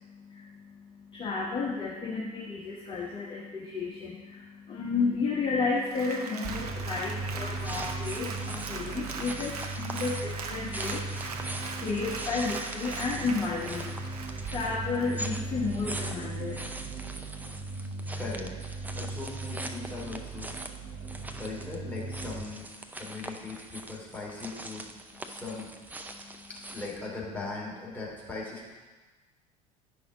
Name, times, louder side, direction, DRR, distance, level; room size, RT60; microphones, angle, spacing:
voice 1, 1.1-13.9 14.5-16.6, left 4 dB, 25° left, -5 dB, 1.3 m, -32 dB
Applause, 5.8-15.5 16.0-16.1, right 4 dB, 75° right, 0.7 m, -41 dB
sound 1, 6.4-22.5, right 3 dB, 35° right, 1.2 m, -38 dB
sound 2, 7.6-27.1, right 1 dB, 10° right, 0.6 m, -42 dB
voice 2, 17.8-20.5 21.4-22.7 23.0-24.9 25.2-25.7 26.7-28.7, left 3 dB, 10° left, -5 dB, 2.8 m, -39 dB
9.9 x 5.8 x 3.8 m, 1.3 s
figure-of-eight pair, 65°, 20 cm